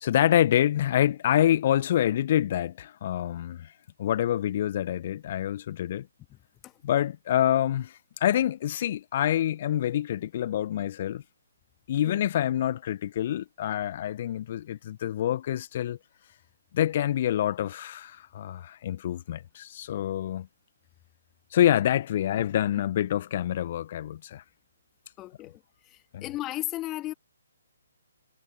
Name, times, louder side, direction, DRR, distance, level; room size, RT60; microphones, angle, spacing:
voice 1, 0.0-3.7 4.0-6.1 6.8-7.9 8.2-11.2 11.9-16.0 16.7-20.5 21.5-24.4 26.1-26.3, left 11 dB, 40° left, 1.4 m, -26 dB
voice 2, 25.2-25.6 25.9-27.1, left 16 dB, 20° left, 2.6 m, -35 dB
figure-of-eight pair, 135°, 0 cm